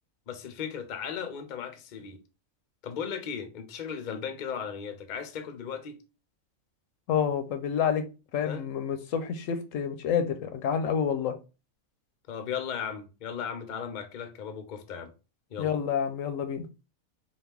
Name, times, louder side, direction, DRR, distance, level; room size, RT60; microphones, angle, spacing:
voice 1, 0.3-2.2 2.8-6.0 8.4-8.6 12.3-15.1 15.5-15.7, left 7 dB, 50° left, 0.6 m, -36 dB
voice 2, 7.1-8.0 8.3-11.3 15.6-16.6, left 7 dB, 75° left, 1.0 m, -28 dB
4.2 x 2.4 x 3.4 m
omnidirectional pair, 1.4 m